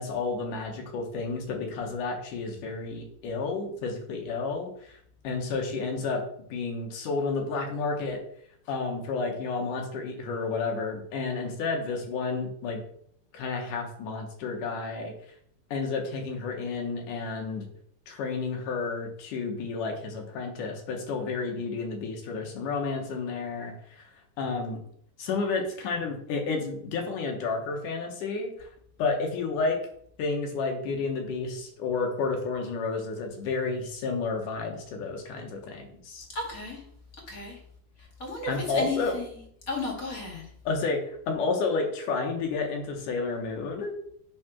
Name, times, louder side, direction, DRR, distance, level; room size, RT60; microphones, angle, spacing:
voice 1, 0.0-5.0 5.2-6.2 6.5-8.2 8.7-12.8 13.3-15.1 15.7-17.7 18.1-24.1 24.4-24.8 25.2-28.7 29.0-29.8 30.2-36.3 38.5-39.2 40.7-43.9, left 4 dB, 75° left, 3 dB, 2.8 m, -31 dB
voice 2, 36.3-36.8 37.3-37.6 38.2-39.4 39.7-40.4, left 3 dB, 30° left, -1 dB, 2.1 m, -33 dB
8.4 x 3.9 x 6.0 m, 0.66 s
omnidirectional pair, 3.8 m